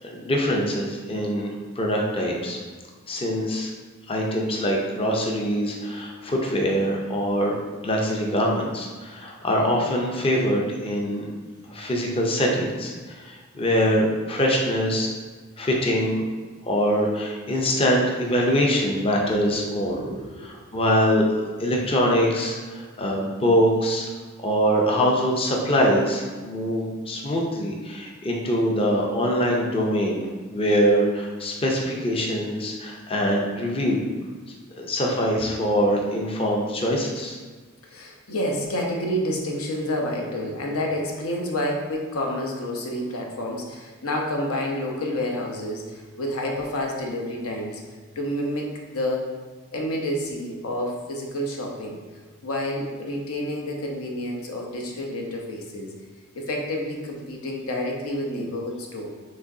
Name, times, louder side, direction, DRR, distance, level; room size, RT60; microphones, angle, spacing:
voice 1, 0.0-2.6 3.1-3.7 4.1-7.6 7.8-11.3 11.7-15.1 15.6-16.2 16.7-20.0 20.7-21.3 21.6-24.1 24.4-34.1 34.8-37.4, equal, 25° left, -1 dB, 0.5 m, -23 dB
voice 2, 19.9-20.8 37.8-47.8 48.2-49.3 49.7-52.0 52.4-55.9 56.3-59.1, left 1 dB, 75° left, 0 dB, 0.8 m, -29 dB
6.1 x 3.1 x 2.7 m, 1.4 s
head